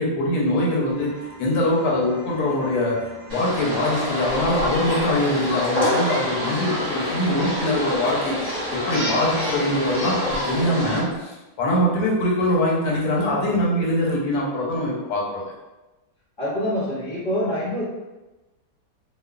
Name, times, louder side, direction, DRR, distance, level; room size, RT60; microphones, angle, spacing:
voice 1, 0.0-8.4 8.7-15.4, left 1 dB, 75° left, -4 dB, 1.1 m, -23 dB
sound 1, 0.9-11.1, equal, 50° right, 1.0 m, -44 dB
sound 2, 3.3-11.0, left 1 dB, 15° right, 0.7 m, -27 dB
Fowl, 3.3-5.4 5.9-6.5 7.1-8.0 8.5-11.2, equal, 75° right, 1.1 m, -40 dB
voice 2, 16.4-17.8, equal, 55° left, -9 dB, 0.6 m, -25 dB
3.0 x 2.1 x 2.3 m, 1.1 s
omnidirectional pair, 1.8 m